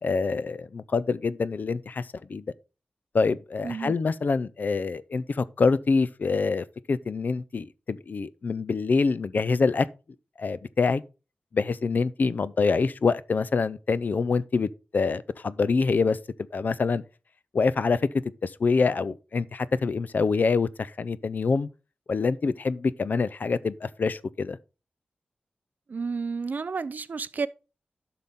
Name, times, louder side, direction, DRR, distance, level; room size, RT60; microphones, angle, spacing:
voice 1, 0.0-2.4 3.1-9.9 10.4-11.0 11.5-16.2 16.5-17.0 17.5-18.0 18.4-21.7 22.1-24.6, left 4 dB, 55° left, 0.5 m, -25 dB
voice 2, 3.6-4.0 25.9-27.5, right 4 dB, 55° right, 0.5 m, -31 dB
11.5 x 5.7 x 3.6 m
wide cardioid pair, 100°, 3 cm